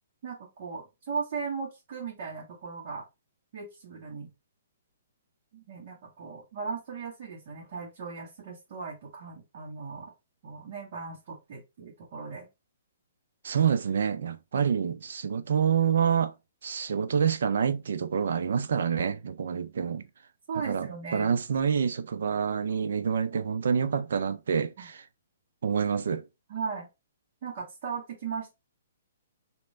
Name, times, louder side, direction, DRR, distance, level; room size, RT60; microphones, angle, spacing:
voice 1, 0.2-3.0 3.5-4.3 5.5-10.1 10.4-12.5 20.5-21.3 23.3-23.4 24.8-24.9 26.5-26.9 27.4-28.5, right 5 dB, 50° right, 1.6 m, -37 dB
voice 2, 13.4-16.3 16.6-20.1 20.7-25.0 25.6-26.2, right 7 dB, 70° right, 0.6 m, -27 dB
3.1 x 2.9 x 4.1 m
hypercardioid pair, 140°, 0 cm